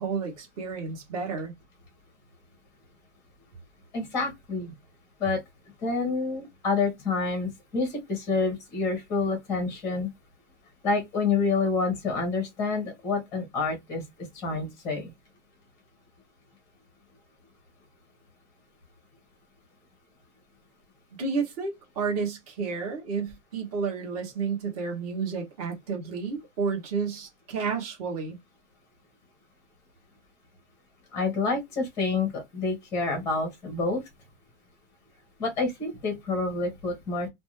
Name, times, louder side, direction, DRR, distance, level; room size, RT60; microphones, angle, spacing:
voice 1, 0.0-1.5 21.2-28.4, right 5 dB, 30° right, 1.0 m, -31 dB
voice 2, 3.9-4.7 5.2-5.4 5.8-10.1 10.8-14.0 14.3-15.1 31.1-34.0 35.4-37.3, left 4 dB, 10° left, 0.7 m, -28 dB
2.5 x 2.1 x 3.0 m
supercardioid pair, 175°, 36 cm